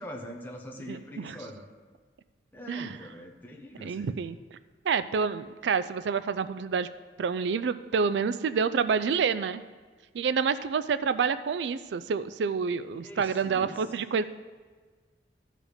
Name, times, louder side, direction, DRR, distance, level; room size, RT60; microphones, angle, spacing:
voice 1, 0.0-1.6 2.5-4.2 13.0-13.8, equal, 10° left, -1 dB, 1.1 m, -43 dB
voice 2, 0.9-1.4 2.7-3.0 3.8-4.4 4.8-6.9 7.2-9.6 10.1-14.2, right 5 dB, 80° right, 13 dB, 0.4 m, -28 dB
14.0 x 5.0 x 5.1 m, 1.4 s
head